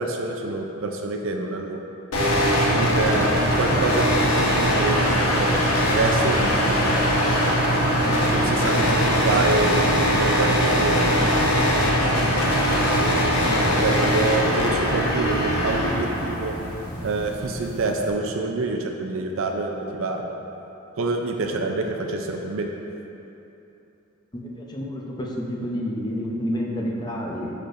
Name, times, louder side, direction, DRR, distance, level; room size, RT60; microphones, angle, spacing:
voice 1, 0.0-1.8 2.7-5.5 5.9-7.1 8.3-11.2 13.8-16.6 17.0-20.3 21.0-22.7, right 3 dB, 65° right, 2 dB, 0.5 m, -27 dB
sound 1, 2.1-18.1, equal, 80° left, 1.2 m, -21 dB
voice 2, 13.4-13.8 24.3-24.4 24.7-27.5, equal, 20° left, -2 dB, 0.6 m, -29 dB
11.5 x 4.3 x 2.6 m, 2.9 s
head